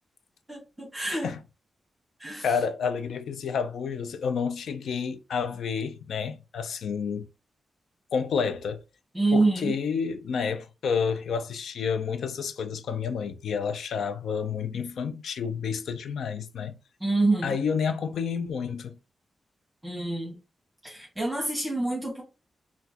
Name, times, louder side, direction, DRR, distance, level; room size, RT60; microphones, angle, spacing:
voice 1, 0.5-1.3 2.2-2.5 9.1-9.8 17.0-17.6 19.8-20.4 20.8-22.2, right 2 dB, 10° right, 1.2 m, -27 dB
voice 2, 2.4-7.3 8.1-8.8 9.3-16.8 17.4-19.0, left 6 dB, 90° left, 0.4 m, -30 dB
4.3 x 2.3 x 2.8 m
cardioid pair, 75°, 0 cm